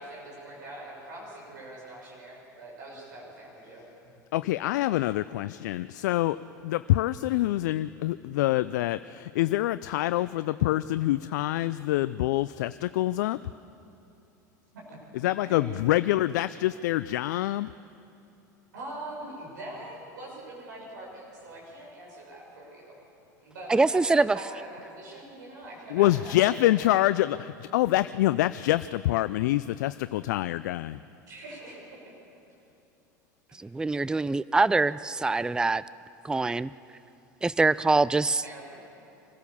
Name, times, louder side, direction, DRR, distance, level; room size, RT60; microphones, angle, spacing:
voice 1, 0.0-4.2 14.7-15.0 15.4-15.7 18.7-23.0 23.4-26.9 31.2-31.8 38.4-38.9, right 1 dB, 80° right, -4 dB, 6.3 m, -43 dB
voice 2, 4.3-6.4 6.6-13.4 15.2-17.7 25.9-31.0, left 15 dB, 70° left, 14 dB, 0.4 m, -26 dB
voice 3, 23.7-24.4 33.6-35.8 36.2-36.7 37.4-38.4, right 3 dB, 10° right, 19 dB, 0.4 m, -24 dB
25.0 x 16.0 x 7.0 m, 2.8 s
hypercardioid pair, 80°, 10 cm